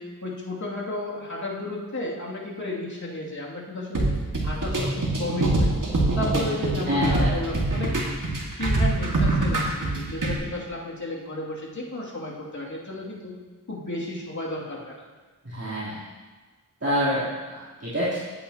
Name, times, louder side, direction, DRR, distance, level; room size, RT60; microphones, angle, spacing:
voice 1, 0.0-4.1 4.4-5.7 6.2-7.9 8.5-13.4 13.7-15.1, left 1 dB, 55° left, -5 dB, 2.5 m, -33 dB
sound 1, 3.9-10.3, right 2 dB, 60° right, 1.9 m, -24 dB
voice 2, 6.9-7.3 15.4-16.0 16.8-18.2, equal, 40° right, -13 dB, 3.3 m, -27 dB
15.0 x 8.5 x 2.9 m, 1.3 s
wide cardioid pair, 55°, 36 cm